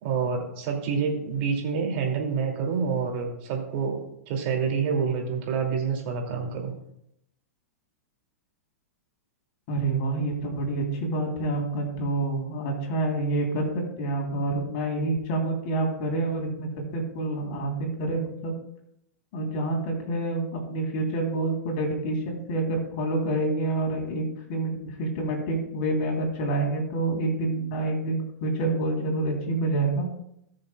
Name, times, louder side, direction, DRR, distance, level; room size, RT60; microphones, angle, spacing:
voice 1, 0.0-4.0 4.3-6.7, right 6 dB, 50° right, 1 dB, 2.5 m, -27 dB
voice 2, 9.7-13.7 14.0-18.5 19.3-30.1, right 2 dB, 50° left, 1 dB, 3.2 m, -27 dB
19.5 x 6.5 x 2.3 m, 0.76 s
hypercardioid pair, 105°, 8 cm